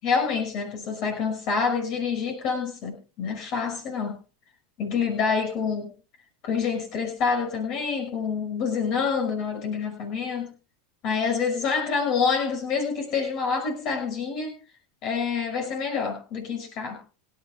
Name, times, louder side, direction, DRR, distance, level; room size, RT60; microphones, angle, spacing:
voice 1, 0.0-4.2 4.8-5.9 6.4-10.5 11.0-14.5 15.0-17.0, left 5 dB, 50° left, 4 dB, 5.9 m, -27 dB
26.5 x 11.5 x 2.4 m, 0.33 s
hypercardioid pair, 110°, 0 cm